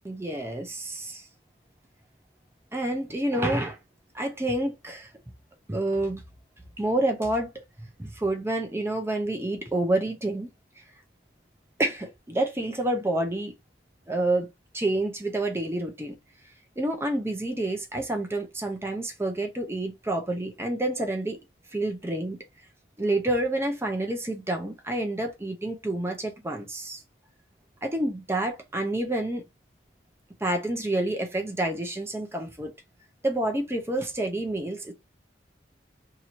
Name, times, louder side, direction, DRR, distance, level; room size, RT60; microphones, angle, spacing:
voice 1, 0.0-1.3 2.7-3.8 4.1-5.1 5.7-6.2 6.8-7.6 8.0-10.5 10.8-10.9 11.8-13.5 14.1-14.5 14.7-16.1 16.8-21.4 21.7-22.4 23.0-27.0 27.8-29.4 30.4-32.7 33.2-34.9, right 1 dB, 15° right, 0.6 m, -28 dB
2.8 x 2.7 x 4.4 m
head